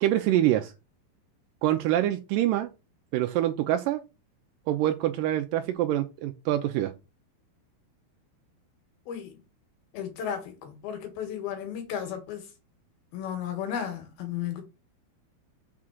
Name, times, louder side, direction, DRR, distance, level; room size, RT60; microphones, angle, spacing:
voice 1, 0.0-0.7 1.6-2.7 3.1-4.0 4.7-6.9, right 13 dB, 85° right, 2.0 m, -25 dB
voice 2, 9.1-9.4 9.9-12.5 13.1-14.6, left 9 dB, 70° left, 3.3 m, -34 dB
6.4 x 3.7 x 6.1 m
omnidirectional pair, 4.5 m